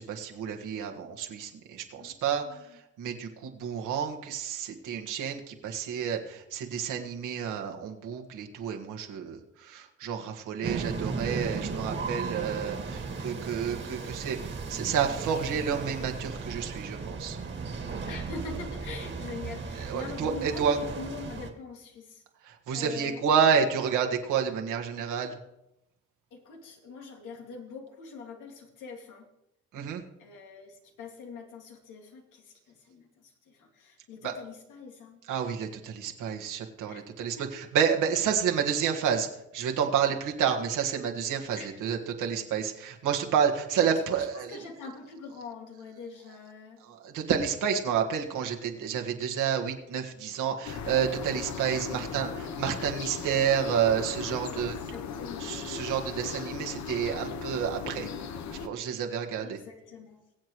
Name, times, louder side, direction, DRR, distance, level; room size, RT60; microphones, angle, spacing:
voice 1, 0.0-2.6 3.0-17.4 19.8-20.8 22.5-25.3 29.7-30.0 34.2-34.3 35.3-39.3 39.5-44.5 46.8-54.7 55.4-58.1 58.6-59.6, right 7 dB, 85° right, 2 dB, 1.8 m, -29 dB
voice 2, 2.0-2.8 13.9-14.2 18.0-22.2 22.7-23.2 26.3-29.3 30.2-35.2 36.9-37.0 37.4-37.6 41.5-41.8 43.7-46.8 51.8-52.1 54.5-55.6 59.4-60.2, left 4 dB, 85° left, 1 dB, 2.3 m, -44 dB
sound 1, 10.6-21.5, right 4 dB, 40° right, 1.8 m, -36 dB
sound 2, 50.6-58.7, left 6 dB, 65° left, 0.9 m, -37 dB
22.5 x 8.0 x 3.1 m, 0.87 s
cardioid pair, 90°, 30 cm